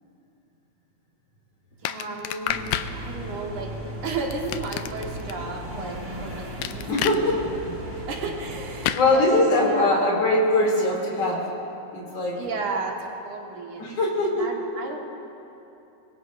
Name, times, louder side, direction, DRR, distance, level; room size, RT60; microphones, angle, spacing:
voice 1, 1.8-2.6 2.9-3.8 4.0-7.5 7.9-10.1 12.3-13.9 14.2-15.0, right 3 dB, 75° right, 0 dB, 3.1 m, -33 dB
sound 1, 1.9-2.9 4.3-5.3 6.6-7.2 8.8-9.1, left 11 dB, 80° left, 1.9 m, -28 dB
sound 2, 2.4-8.9, right 1 dB, 25° right, 1.7 m, -37 dB
voice 2, 5.6-6.2 6.7-8.1 8.9-11.5 11.9-12.4 13.8-14.5, left 2 dB, 50° left, -3 dB, 3.9 m, -23 dB
25.5 x 21.5 x 2.6 m, 2.9 s
omnidirectional pair, 3.6 m